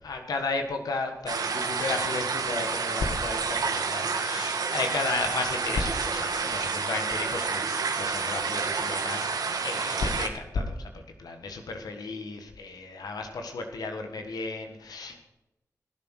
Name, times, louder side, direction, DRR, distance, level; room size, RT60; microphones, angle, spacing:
voice 1, 0.0-9.3 9.6-10.9 11.2-15.3, left 3 dB, 90° left, 5 dB, 1.5 m, -33 dB
sound 1, 1.3-10.3, right 5 dB, 85° right, 1.5 m, -29 dB
16.5 x 7.7 x 6.4 m, 0.92 s
cardioid pair, 45°, 6 cm